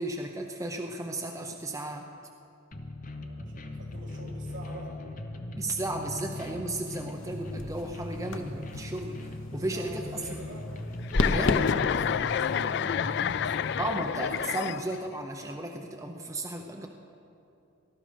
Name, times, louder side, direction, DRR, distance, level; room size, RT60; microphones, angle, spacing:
voice 1, 0.0-2.1 5.5-10.4 11.3-11.6 13.8-16.9, right 2 dB, 15° right, 2 dB, 0.7 m, -34 dB
sound 1, 2.7-13.9, left 1 dB, 40° left, 1.0 m, -39 dB
voice 2, 3.2-5.0 9.6-10.7 11.9-13.9, right 1 dB, 70° right, -1 dB, 3.1 m, -46 dB
sound 2, 6.9-14.6, left 2 dB, 75° left, 0.9 m, -35 dB
Chuckle chortle, 11.1-15.2, left 8 dB, 60° left, 0.3 m, -29 dB
19.0 x 12.5 x 5.2 m, 2.7 s
head